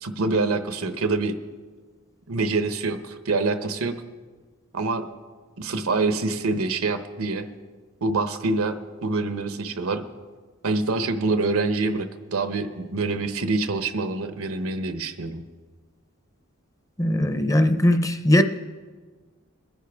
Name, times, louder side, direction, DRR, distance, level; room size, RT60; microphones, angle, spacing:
voice 1, 0.0-1.3 2.3-3.9 4.7-5.1 5.6-7.5 8.0-8.7 9.0-10.0 10.6-15.4, right 3 dB, 85° right, 0.9 m, -25 dB
voice 2, 17.0-18.4, left 1 dB, 15° left, 0.6 m, -19 dB
22.0 x 10.0 x 3.5 m
head